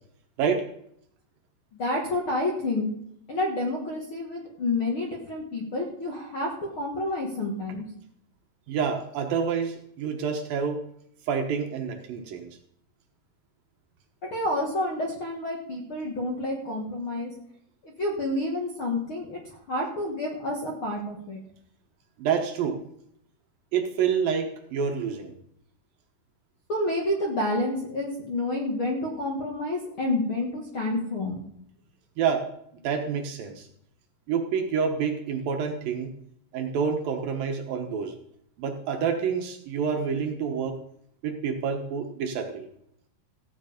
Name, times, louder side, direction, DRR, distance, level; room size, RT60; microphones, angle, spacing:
voice 1, 1.8-2.9 3.3-7.8 14.2-17.3 17.8-21.4 26.7-31.4, left 1 dB, 45° left, 0 dB, 1.8 m, -29 dB
voice 2, 8.7-10.8 11.3-12.5 22.2-22.8 23.7-25.3 32.2-32.5 32.8-33.7 34.3-36.1 36.5-38.2 38.6-40.8 41.2-42.7, right 6 dB, 65° right, 4 dB, 2.7 m, -28 dB
15.0 x 9.3 x 5.1 m, 0.70 s
omnidirectional pair, 4.8 m